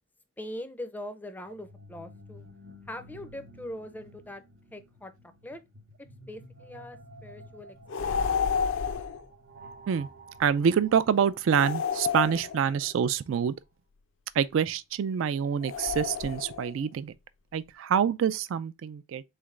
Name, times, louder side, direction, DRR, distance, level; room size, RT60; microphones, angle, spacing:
voice 1, 0.4-2.5 2.9-4.4 4.7-5.1 5.4-5.6 6.3-8.5, left 1 dB, 10° left, 0.4 m, -42 dB
sound 1, 1.5-13.3, right 1 dB, 50° right, 0.7 m, -52 dB
sound 2, 7.9-9.2 11.5-12.9 15.6-16.7, left 6 dB, 65° left, 0.4 m, -30 dB
voice 2, 10.4-13.5 14.4-17.1 17.5-19.2, right 7 dB, 70° right, 0.3 m, -26 dB
3.9 x 3.2 x 3.6 m
head